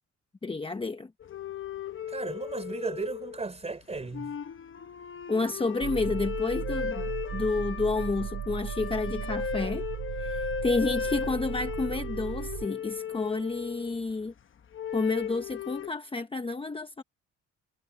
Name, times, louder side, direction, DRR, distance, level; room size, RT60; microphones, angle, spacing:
voice 1, 0.4-1.1 5.3-7.0 7.3-9.8 10.2-14.3 14.9-17.0, left 3 dB, 20° left, 1.0 m, -30 dB
sound 1, 1.2-3.6 3.9-14.1 14.7-15.9, left 8 dB, 45° left, 1.0 m, -36 dB
voice 2, 2.1-4.4, right 3 dB, 20° right, 4.3 m, -35 dB
sound 2, 5.8-12.7, right 10 dB, 75° right, 4.2 m, -36 dB
cardioid pair, 130°, 29 cm